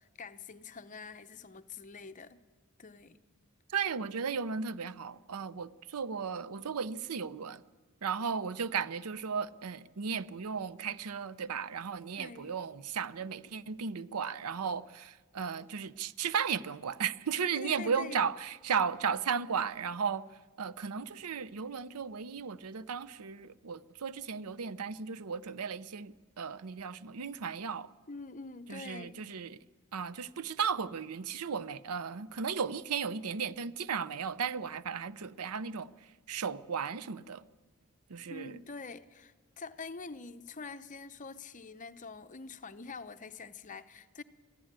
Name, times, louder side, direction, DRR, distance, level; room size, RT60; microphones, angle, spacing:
voice 1, 0.0-2.4 2.8-3.2 12.2-12.5 17.6-18.3 28.1-29.3 38.3-44.2, left 4 dB, 35° left, 0.7 m, -45 dB
voice 2, 3.7-7.6 8.0-20.3 20.6-27.9 28.7-29.6 29.9-35.9 36.3-37.4 38.1-38.6, right 6 dB, 85° right, 0.6 m, -35 dB
22.5 x 14.0 x 8.8 m
head